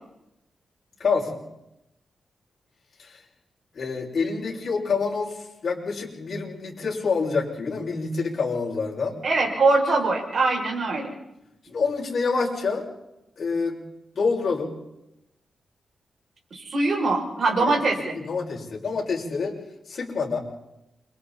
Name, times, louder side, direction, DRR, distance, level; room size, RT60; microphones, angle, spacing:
voice 1, 1.0-1.4 3.0-3.1 3.7-5.4 5.6-9.2 11.7-12.8 13.4-13.8 14.1-14.7 17.6-17.8 18.1-19.6 19.9-20.4, left 4 dB, 55° left, -3 dB, 6.6 m, -27 dB
voice 2, 9.2-11.1 16.5-18.2, right 3 dB, 55° right, 0 dB, 6.8 m, -22 dB
29.0 x 25.5 x 4.3 m, 0.88 s
cardioid pair, 100°, 0 cm